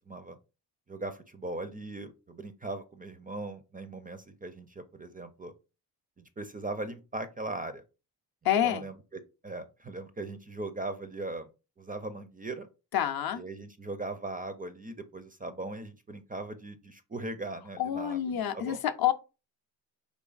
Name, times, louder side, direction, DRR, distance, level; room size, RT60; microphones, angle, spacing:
voice 1, 0.1-0.4 0.9-5.5 6.2-7.8 8.6-11.5 11.8-12.7 13.3-18.8, right 2 dB, 20° right, 0.4 m, -39 dB
voice 2, 8.4-8.8 12.9-13.4 17.8-19.1, left 10 dB, 55° left, 0.6 m, -28 dB
4.0 x 3.1 x 2.4 m
cardioid pair, 65°, 45 cm